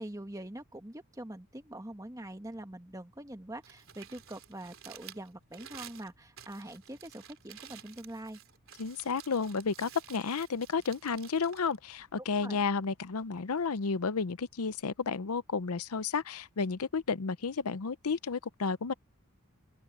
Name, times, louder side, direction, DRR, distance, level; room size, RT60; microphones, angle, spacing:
voice 1, 0.0-8.4 12.4-12.6, right 1 dB, 15° right, 1.4 m, -44 dB
Crumpling crinkling, 3.5-12.6, right 10 dB, 60° right, 3.3 m, -52 dB
voice 2, 8.8-18.9, left 5 dB, 85° left, 0.7 m, -32 dB
open air
head